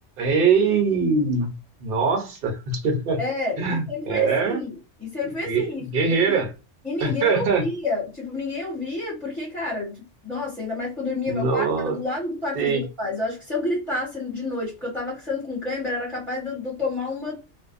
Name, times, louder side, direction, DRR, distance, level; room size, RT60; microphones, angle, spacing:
voice 1, 0.2-1.5 1.8-3.2 3.6-4.6 5.4-6.5 7.0-7.7 11.3-12.0 12.5-12.8, right 4 dB, 55° right, 0.9 m, -22 dB
voice 2, 3.2-6.4 6.8-17.4, left 2 dB, ahead, 0.9 m, -29 dB
2.5 x 2.1 x 2.5 m
omnidirectional pair, 1.2 m